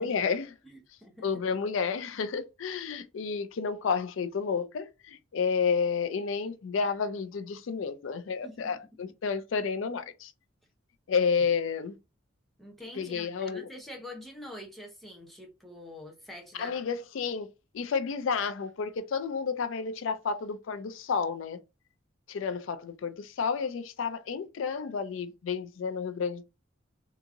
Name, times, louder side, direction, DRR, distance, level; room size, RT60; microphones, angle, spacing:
voice 1, 0.0-0.5 1.2-10.3 11.1-12.0 12.9-13.7 16.6-17.5 17.7-21.6 22.3-26.4, left 5 dB, 80° left, 0.4 m, -31 dB
voice 2, 0.6-1.3 8.4-8.7 12.6-16.8, left 1 dB, ahead, 0.8 m, -45 dB
3.6 x 2.8 x 2.5 m
head